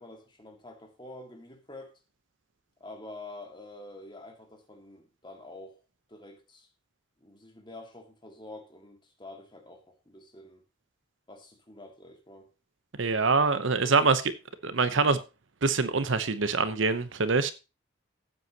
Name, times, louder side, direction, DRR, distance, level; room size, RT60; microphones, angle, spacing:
voice 1, 0.0-1.9 2.8-5.8 6.1-6.7 7.2-10.6 11.3-12.5, left 2 dB, 20° left, 2.1 m, -47 dB
voice 2, 13.0-14.3 14.6-15.2 15.6-17.5, right 4 dB, 65° right, 0.9 m, -24 dB
15.0 x 8.1 x 2.9 m
head